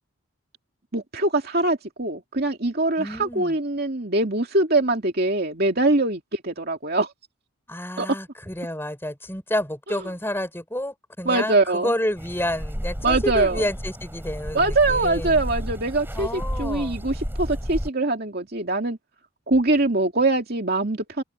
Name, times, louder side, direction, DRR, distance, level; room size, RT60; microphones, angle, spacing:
voice 1, 0.9-7.1 8.0-8.1 11.3-11.9 13.0-13.6 14.5-19.0 19.5-21.2, right 2 dB, 45° right, 2.7 m, -23 dB
voice 2, 3.0-3.6 7.7-15.5 16.1-17.0, left 1 dB, 10° left, 5.9 m, -29 dB
sound 1, 12.2-17.9, equal, 10° right, 7.0 m, -31 dB
head